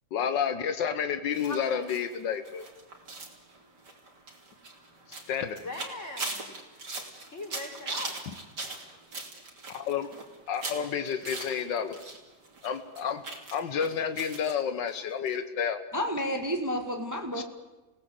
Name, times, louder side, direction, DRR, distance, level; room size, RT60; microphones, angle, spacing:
voice 1, 0.1-2.7 5.3-5.6 9.7-10.1 10.5-12.0 12.6-13.2 13.5-15.8 17.4-17.5, left 7 dB, 90° left, 9 dB, 1.8 m, -30 dB
sound 1, 1.3-12.2 12.4-14.5 14.9-15.0 15.3-15.4, right 3 dB, 70° right, 3.7 m, -40 dB
voice 2, 1.4-1.9 5.5-6.4 7.3-8.2 11.0-11.1, left 2 dB, 40° left, 1 dB, 5.7 m, -40 dB
voice 3, 15.9-17.4, equal, 10° right, 4 dB, 1.6 m, -30 dB
28.5 x 18.0 x 7.9 m, 1.1 s
omnidirectional pair, 1.9 m